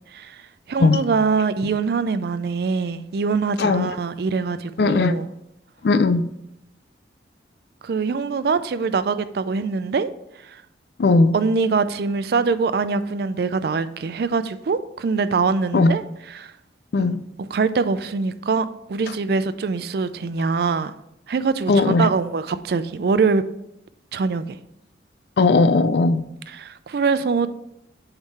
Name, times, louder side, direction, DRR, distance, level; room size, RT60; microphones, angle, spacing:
voice 1, 0.7-5.3 7.8-10.1 10.5-10.6 11.3-16.0 16.3-16.5 17.0-17.1 17.4-20.9 21.3-23.4 24.1-24.6 26.5-27.5, right 4 dB, 55° right, 0.4 m, -23 dB
voice 2, 4.8-5.1 5.8-6.3 11.0-11.4 15.7-16.0 16.9-17.2 21.7-22.1 25.4-26.2, left 3 dB, 65° left, 0.4 m, -17 dB
7.9 x 3.7 x 4.1 m
head